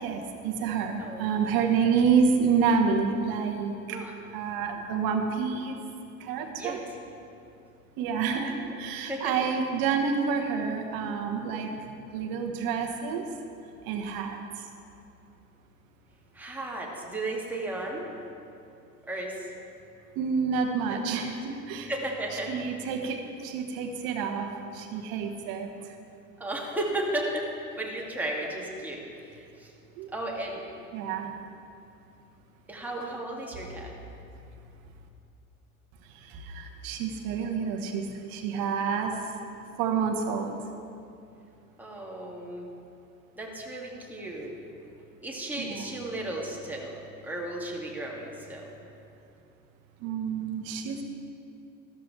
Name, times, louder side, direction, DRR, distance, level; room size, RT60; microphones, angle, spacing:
voice 1, 0.0-4.0 4.3-5.8 6.2-6.8 8.0-11.7 12.1-13.2 13.9-14.4 20.2-21.9 22.5-24.5 24.7-25.7 30.0-30.1 30.9-31.3 36.3-39.1 39.8-40.6 45.6-45.9 50.0-51.0, right 6 dB, 50° right, 4 dB, 1.4 m, -28 dB
voice 2, 8.4-8.8 9.1-9.3 16.3-18.1 19.1-19.5 20.9-21.0 21.9-22.9 26.4-27.5 27.7-29.7 30.1-30.6 32.7-33.9 41.8-42.7 43.4-44.5 45.2-48.6, right 1 dB, 5° right, -3 dB, 2.2 m, -34 dB
13.5 x 13.0 x 3.4 m, 2.6 s
figure-of-eight pair, 70°, 44 cm